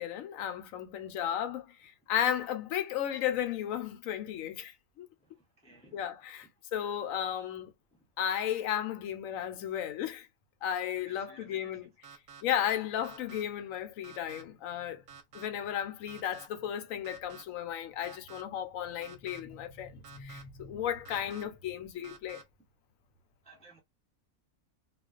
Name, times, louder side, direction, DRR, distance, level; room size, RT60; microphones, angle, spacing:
voice 1, 0.0-5.1 5.9-7.7 8.2-10.3 10.6-11.9 12.4-15.0 15.3-22.4, left 10 dB, 70° left, 0.9 m, -34 dB
voice 2, 5.2-6.1 7.9-8.0 10.9-11.9 23.4-23.8, right 2 dB, 10° left, 0.4 m, -58 dB
sound 1, 12.0-12.4 13.0-13.4 14.0-14.4 15.1-15.5 16.1-16.5 17.0-17.4 18.0-18.4 19.0-19.4 20.0-20.4 21.0-21.4 22.0-22.4, right 6 dB, 65° right, 0.9 m, -50 dB
2.4 x 2.2 x 2.3 m
omnidirectional pair, 1.6 m